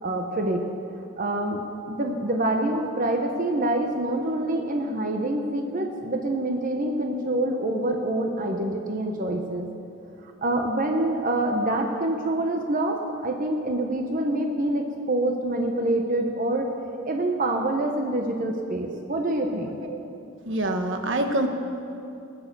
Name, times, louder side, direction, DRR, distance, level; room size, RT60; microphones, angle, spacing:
voice 1, 0.0-0.6 1.2-1.6 1.9-9.7 10.4-16.7 17.0-19.7, right 1 dB, 40° right, 3 dB, 1.0 m, -26 dB
voice 2, 20.5-21.5, right 1 dB, 65° right, 5 dB, 1.2 m, -25 dB
18.0 x 9.6 x 6.8 m, 2.7 s
head